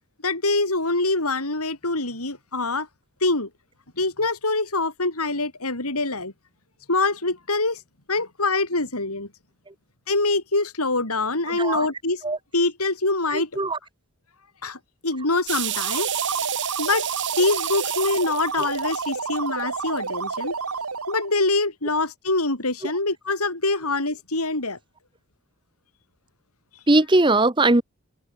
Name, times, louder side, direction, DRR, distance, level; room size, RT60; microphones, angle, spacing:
voice 1, 0.2-2.9 3.2-3.5 4.0-6.3 6.9-7.8 8.1-9.3 10.1-12.2 12.5-13.5 14.6-16.1 16.8-17.1 17.4-20.5 21.1-24.8, left 2 dB, 85° left, 6.9 m, -24 dB
voice 2, 11.6-11.9 12.2-12.4 13.3-13.8 26.9-27.8, right 2 dB, 20° right, 1.1 m, -19 dB
sound 1, 15.5-19.6 20.1-20.3, right 15 dB, 55° right, 1.6 m, -31 dB
sound 2, 15.6-21.3, right 4 dB, 85° right, 1.9 m, -30 dB
head